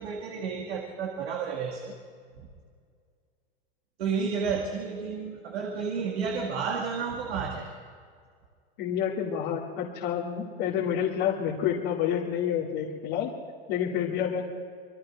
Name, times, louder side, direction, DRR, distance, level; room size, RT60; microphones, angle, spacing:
voice 1, 0.0-1.9 4.0-7.7, right 5 dB, 85° right, -1 dB, 2.0 m, -31 dB
voice 2, 8.8-13.3 13.7-14.4, left 9 dB, 55° left, -4 dB, 2.3 m, -28 dB
27.0 x 21.5 x 2.5 m, 2.1 s
supercardioid pair, 125°, 31 cm